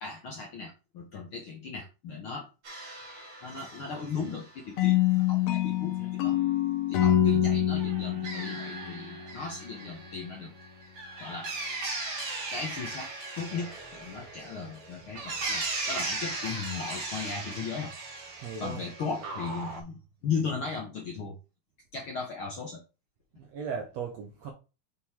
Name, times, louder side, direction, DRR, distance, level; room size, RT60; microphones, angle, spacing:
voice 1, 0.0-2.5 3.4-6.4 6.9-10.5 11.2-11.5 12.5-13.1 13.4-17.9 18.6-21.4 21.9-22.8, left 5 dB, 60° left, 1.4 m, -37 dB
sound 1, 2.6-4.6 7.8-19.8, right 3 dB, 45° right, 2.0 m, -38 dB
sound 2, 4.8-9.7, left 12 dB, 75° left, 1.5 m, -26 dB
voice 2, 18.4-18.9 23.3-24.5, right 6 dB, 70° right, 1.7 m, -37 dB
6.4 x 3.8 x 4.2 m
omnidirectional pair, 3.8 m